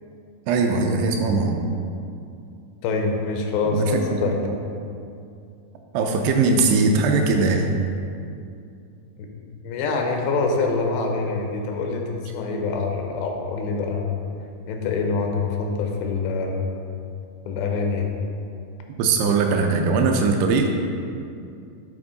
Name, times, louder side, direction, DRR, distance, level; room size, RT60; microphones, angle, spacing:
voice 1, 0.5-1.6 3.7-3.9 4.4-4.6 5.9-7.7 19.0-20.7, right 4 dB, 80° right, 3 dB, 2.5 m, -20 dB
voice 2, 2.8-4.4 9.2-9.3 9.6-14.2 14.7-16.7 17.5-18.1, left 4 dB, 90° left, 2 dB, 2.9 m, -25 dB
10.5 x 3.5 x 3.8 m, 2.5 s
omnidirectional pair, 4.8 m